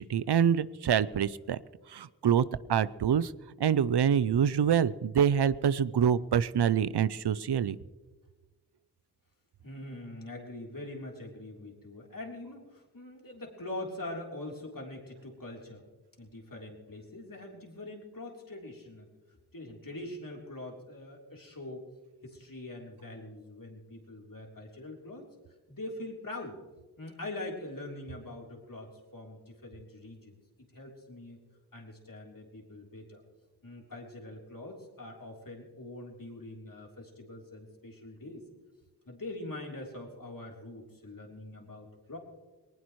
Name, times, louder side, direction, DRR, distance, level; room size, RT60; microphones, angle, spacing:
voice 1, 0.0-1.6 1.9-3.3 3.6-7.8, right 8 dB, 85° right, 18 dB, 0.5 m, -26 dB
voice 2, 9.6-15.9 16.2-21.9 22.2-25.3 25.7-26.6 27.0-30.4 30.7-31.4 31.7-33.2 33.6-38.4 39.1-42.2, left 2 dB, 55° left, 0 dB, 3.5 m, -43 dB
20.0 x 19.0 x 3.1 m, 1.3 s
wide cardioid pair, 40°, 39 cm